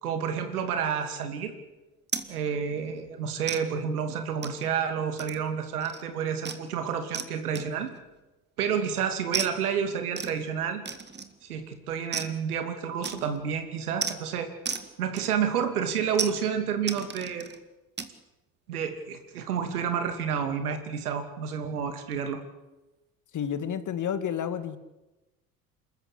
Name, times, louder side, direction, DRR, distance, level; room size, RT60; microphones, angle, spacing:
voice 1, 0.0-1.5 2.3-7.9 8.6-10.8 11.4-14.5 15.0-17.5 18.7-22.4, right 7 dB, 80° right, 7 dB, 2.7 m, -30 dB
sound 1, 2.1-2.3 2.7-2.9 3.5-3.6 4.4-4.7 5.2-5.5 5.8-6.0 6.5-6.7 7.1-7.3 7.6-8.0 9.3-9.5 10.2-10.4 10.9-11.4 12.1-12.4 13.0-13.4 14.0-14.2 14.7-14.9 15.2-15.6 16.2-16.4 16.9-17.6 18.0-18.1, right 5 dB, 25° right, 2.1 m, -34 dB
voice 2, 23.3-24.8, left 8 dB, 40° left, 11 dB, 2.2 m, -30 dB
28.0 x 14.0 x 8.5 m, 1.0 s
hypercardioid pair, 65°, 44 cm